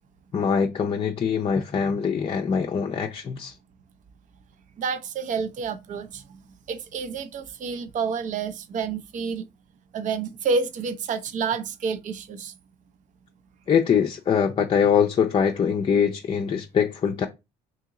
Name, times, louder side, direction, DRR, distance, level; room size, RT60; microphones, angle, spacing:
voice 1, 0.3-3.5 13.7-17.3, left 7 dB, 35° left, 0.4 m, -23 dB
voice 2, 4.8-6.2 6.7-9.4 9.9-12.5, right 5 dB, 50° right, 0.5 m, -29 dB
2.9 x 2.7 x 3.7 m
cardioid pair, 110°, 17 cm